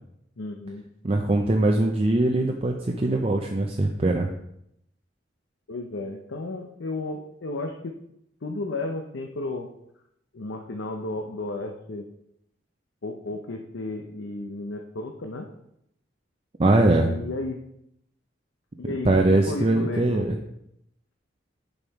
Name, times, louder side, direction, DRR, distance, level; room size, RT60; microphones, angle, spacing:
voice 1, 0.4-0.9 5.7-7.9 8.4-9.7 10.3-12.0 13.0-15.5 16.7-17.6 18.8-20.2, left 2 dB, 90° left, 3 dB, 0.7 m, -33 dB
voice 2, 1.0-4.3 16.6-17.1 19.0-20.4, right 2 dB, 30° right, 2 dB, 0.5 m, -21 dB
7.1 x 5.5 x 4.6 m, 0.78 s
head